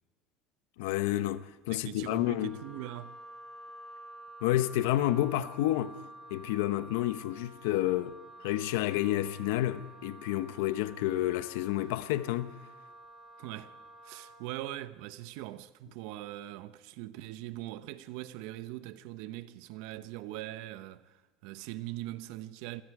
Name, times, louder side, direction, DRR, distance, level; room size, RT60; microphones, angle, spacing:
voice 1, 0.8-2.6 4.4-6.0 6.3-12.6, left 14 dB, 85° left, 1.0 m, -30 dB
voice 2, 1.7-3.2 13.4-13.7 14.0-22.8, right 15 dB, 70° right, 0.9 m, -41 dB
Wind instrument woodwind instrument, 2.0-14.5, right 1 dB, ahead, 4.4 m, -50 dB
28.5 x 23.0 x 4.9 m
cardioid pair, 145°, 0 cm